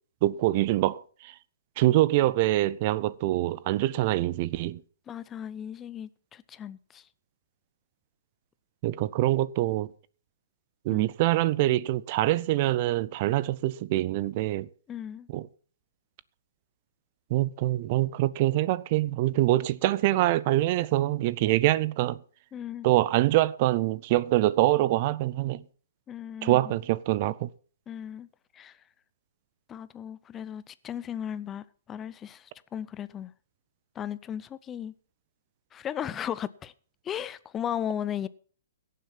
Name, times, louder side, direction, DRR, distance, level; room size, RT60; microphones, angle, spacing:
voice 1, 0.2-1.3 1.8-4.8 8.8-9.9 10.8-14.7 15.3-15.5 17.3-22.2 22.8-25.6 26.4-27.5, right 16 dB, 40° right, 0.5 m, -25 dB
voice 2, 5.1-7.1 10.9-11.1 14.9-15.3 22.5-22.9 26.1-26.8 27.9-28.3 28.5-28.8 29.7-33.3 34.0-34.9 35.7-36.7 37.0-38.3, left 9 dB, 15° left, 0.6 m, -36 dB
17.0 x 7.4 x 5.5 m
hypercardioid pair, 150°, 0 cm